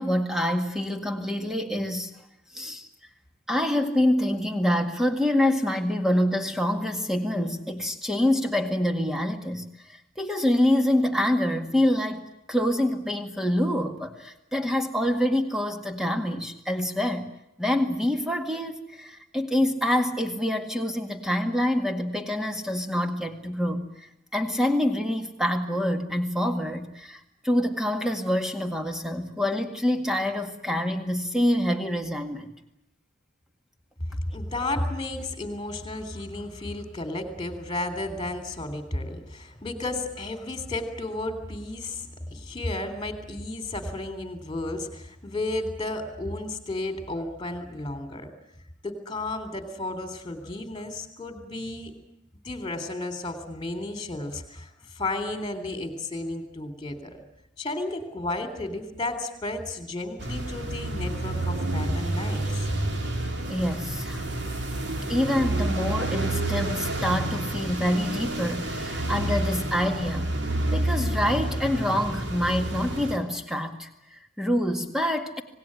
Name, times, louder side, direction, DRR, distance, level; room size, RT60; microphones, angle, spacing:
voice 1, 0.0-2.1 2.5-2.9 3.5-12.2 12.5-17.3 17.6-32.5 63.5-64.2 65.1-70.3 70.7-75.4, left 1 dB, ahead, 4 dB, 2.0 m, -26 dB
voice 2, 34.1-48.3 48.8-51.9 52.4-57.2 57.6-62.7, left 2 dB, 20° left, 7 dB, 3.4 m, -33 dB
sound 1, 60.2-73.2, right 1 dB, 55° right, 3.0 m, -29 dB
26.0 x 19.0 x 10.0 m, 0.82 s
head